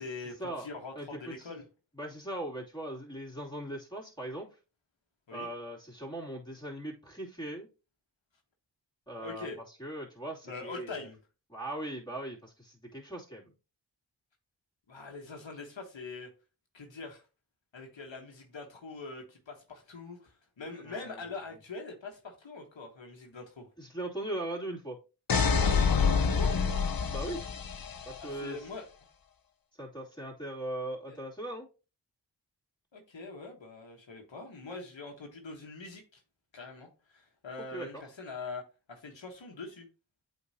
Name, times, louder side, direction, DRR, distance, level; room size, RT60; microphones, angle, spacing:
voice 1, 0.0-1.6 5.3-5.5 9.2-9.6 10.4-11.2 14.9-16.3 16.7-17.2 17.7-23.7 26.2-26.6 28.2-28.9 31.1-31.2 32.9-36.2 36.5-39.9, left 3 dB, 80° left, 2 dB, 1.4 m, -43 dB
voice 2, 0.9-1.6 2.0-4.5 5.3-7.7 9.1-11.1 11.5-13.5 20.7-21.2 23.8-25.0 27.1-27.4 28.0-28.6 29.8-31.7 37.7-38.0, right 1 dB, 10° left, -3 dB, 2.8 m, -39 dB
sound 1, 25.3-28.2, left 5 dB, 50° left, 0.8 m, -27 dB
8.3 x 4.2 x 2.8 m, 0.32 s
cardioid pair, 40°, 45 cm